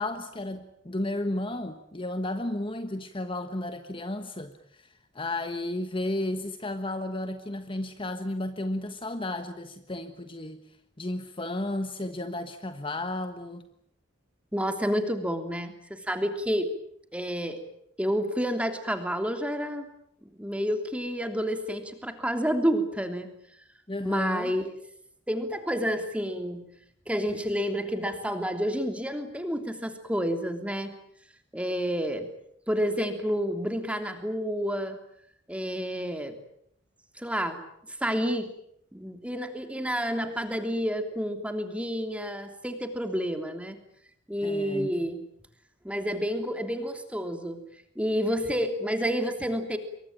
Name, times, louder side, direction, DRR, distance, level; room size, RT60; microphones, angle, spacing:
voice 1, 0.0-10.6 11.0-13.6 23.9-24.5 44.4-45.0, left 1 dB, 25° left, 8 dB, 1.3 m, -33 dB
voice 2, 14.5-16.7 17.1-17.6 18.0-19.9 20.3-23.3 24.0-24.7 25.3-26.6 27.1-30.9 31.5-32.3 32.7-35.0 35.5-36.3 37.1-37.6 37.9-38.5 38.9-43.8 44.3-45.2 45.8-47.6 47.9-49.8, equal, 5° right, 7 dB, 3.1 m, -29 dB
27.0 x 23.5 x 9.0 m, 0.71 s
head